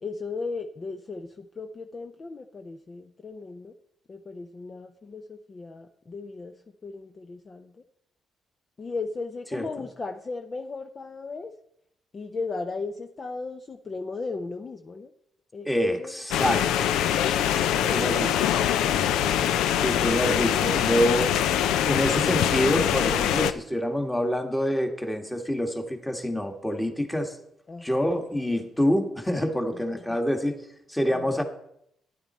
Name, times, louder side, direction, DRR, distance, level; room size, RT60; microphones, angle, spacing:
voice 1, 0.0-3.7 4.1-7.8 8.8-11.5 12.1-15.1 15.5-16.2 27.7-28.1 29.7-30.2 31.1-31.4, left 4 dB, 35° left, 6 dB, 0.6 m, -37 dB
voice 2, 15.7-16.8 17.9-18.3 19.8-21.3 21.8-27.3 27.8-30.5 30.9-31.4, equal, 5° left, 5 dB, 1.5 m, -26 dB
sound 1, 16.3-23.5, left 10 dB, 90° left, 0.5 m, -23 dB
12.5 x 10.5 x 4.3 m, 0.75 s
cardioid pair, 90°, 0 cm